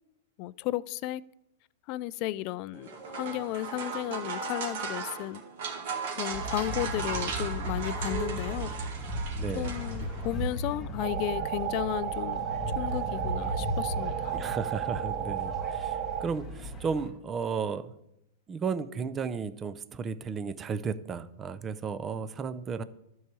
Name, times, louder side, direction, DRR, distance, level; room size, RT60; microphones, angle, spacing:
voice 1, 0.4-1.2 1.9-5.4 6.1-8.8 9.5-12.5 12.8-14.4, left 15 dB, 40° left, 0.3 m, -34 dB
sound 1, 2.7-10.4, right 5 dB, 65° right, 2.1 m, -37 dB
sound 2, 6.3-17.1, equal, 15° left, 2.2 m, -36 dB
voice 2, 9.4-9.8 14.3-17.9 18.5-22.8, right 5 dB, 20° right, 0.5 m, -34 dB
sound 3, 11.0-16.3, right 11 dB, 45° right, 0.9 m, -33 dB
12.5 x 4.7 x 6.9 m
supercardioid pair, 150°, 0 cm